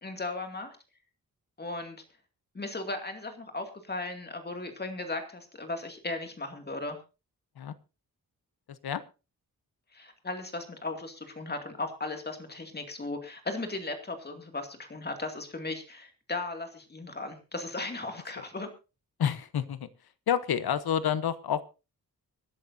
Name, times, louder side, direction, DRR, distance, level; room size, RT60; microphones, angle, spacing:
voice 1, 0.0-0.7 1.6-2.0 2.5-7.0 9.9-18.7, left 2 dB, 25° left, 5 dB, 2.4 m, -36 dB
voice 2, 8.7-9.0 18.4-18.5 19.2-19.9 20.3-21.6, left 8 dB, 85° left, 14 dB, 1.1 m, -29 dB
25.5 x 11.0 x 2.7 m, 0.31 s
wide cardioid pair, 140°, 36 cm